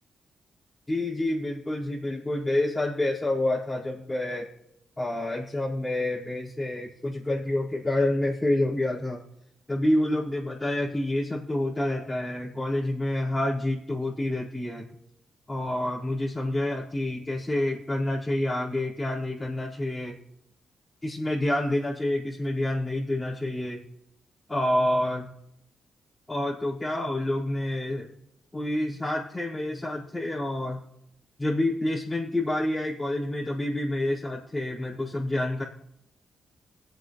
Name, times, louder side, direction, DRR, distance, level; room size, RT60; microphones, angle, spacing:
voice 1, 0.9-4.5 5.0-9.2 9.7-14.8 15.5-20.1 21.0-23.8 24.5-25.3 26.3-28.1 28.5-30.8 31.4-35.6, left 1 dB, 20° left, -11 dB, 5.1 m, -28 dB
21.5 x 8.2 x 3.3 m, 0.77 s
supercardioid pair, 55°, 0 cm